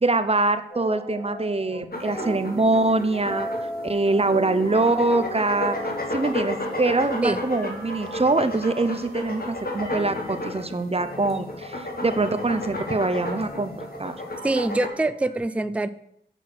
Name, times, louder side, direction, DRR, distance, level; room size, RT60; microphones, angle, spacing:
voice 1, 0.0-3.5 3.8-5.8 6.1-13.7 14.0-14.1, right 2 dB, 30° right, 9 dB, 0.7 m, -24 dB
sound 1, 0.7-1.8 2.1-9.3 9.8-15.4, right 1 dB, 75° left, 3.3 m, -38 dB
sound 2, 1.9-14.9, left 1 dB, 50° left, 1.6 m, -32 dB
voice 2, 14.4-15.9, right 2 dB, 5° right, 12 dB, 0.4 m, -24 dB
7.0 x 6.1 x 6.0 m, 0.74 s
wide cardioid pair, 70°, 19 cm